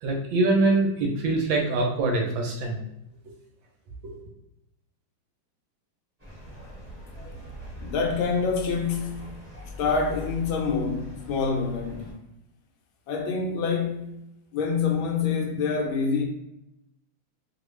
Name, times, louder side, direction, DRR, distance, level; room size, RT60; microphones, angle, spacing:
voice 1, 0.0-2.8 4.1-4.2, right 2 dB, 75° right, 1.2 m, -24 dB
sound 1, 6.2-12.1, left 1 dB, 10° right, 0.9 m, -41 dB
voice 2, 7.8-9.4 9.8-12.2 13.1-14.2 14.5-16.2, left 5 dB, 75° left, 1.3 m, -26 dB
3.2 x 2.3 x 3.1 m
omnidirectional pair, 2.3 m